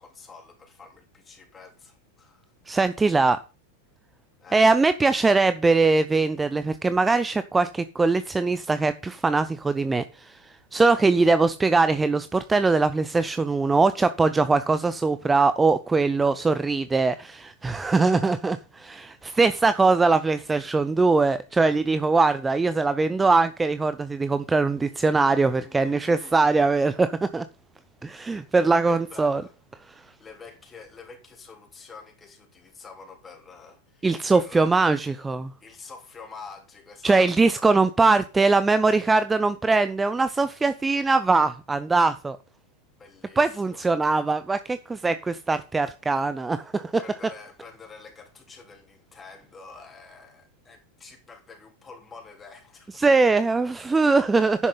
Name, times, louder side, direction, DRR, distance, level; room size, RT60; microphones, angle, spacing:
voice 1, 0.0-2.5 4.4-4.9 25.6-26.5 28.3-28.5 28.9-29.5 30.2-34.9 35.6-37.6 43.0-43.8 47.0-53.0, left 4 dB, 15° left, 3.3 m, -47 dB
voice 2, 2.7-3.4 4.5-27.4 28.0-29.4 34.0-35.5 37.0-42.4 43.4-46.9 53.0-54.7, right 3 dB, 10° right, 0.6 m, -22 dB
11.0 x 10.0 x 4.0 m
figure-of-eight pair, 90°, 0 cm